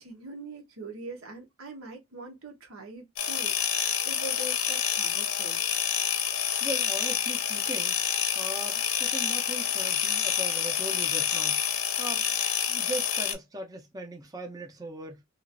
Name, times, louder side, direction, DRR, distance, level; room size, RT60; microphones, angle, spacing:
voice 1, 0.0-5.6, right 3 dB, 90° right, 1.0 m, -43 dB
sound 1, 3.2-13.3, left 9 dB, 85° left, 0.7 m, -28 dB
voice 2, 6.6-8.0 8.3-11.6 12.0-12.2 12.7-15.2, right 1 dB, 20° right, 0.6 m, -39 dB
3.0 x 2.4 x 2.5 m
head